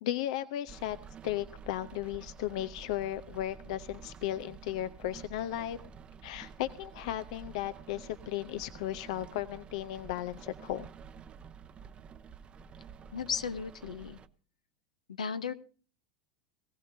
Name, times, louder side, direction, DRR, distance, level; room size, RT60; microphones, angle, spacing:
voice 1, 0.0-1.0 1.2-5.8 6.2-10.9, left 13 dB, 65° left, 13 dB, 0.6 m, -35 dB
Rain, 0.7-14.3, right 6 dB, 30° right, 0.7 m, -50 dB
voice 2, 13.1-14.2 15.1-15.5, left 6 dB, 85° left, 11 dB, 0.9 m, -35 dB
19.0 x 16.5 x 2.7 m, 0.40 s
hypercardioid pair, 90°, 4 cm